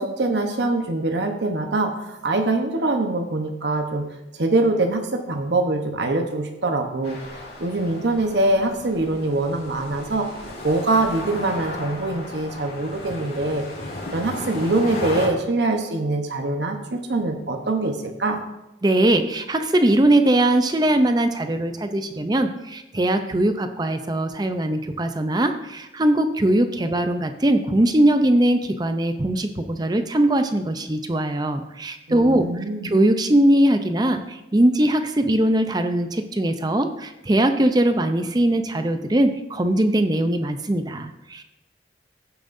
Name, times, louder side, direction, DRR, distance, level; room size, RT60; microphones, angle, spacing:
voice 1, 0.0-4.1 4.4-13.6 14.1-18.4 32.1-32.9, right 2 dB, 70° right, 4 dB, 1.0 m, -24 dB
sound 1, 7.0-15.3, left 1 dB, 65° left, 2.2 m, -35 dB
voice 2, 18.8-32.5 32.9-34.2 34.5-41.4, right 1 dB, 20° right, 7 dB, 0.5 m, -20 dB
15.5 x 7.2 x 2.6 m, 0.92 s
head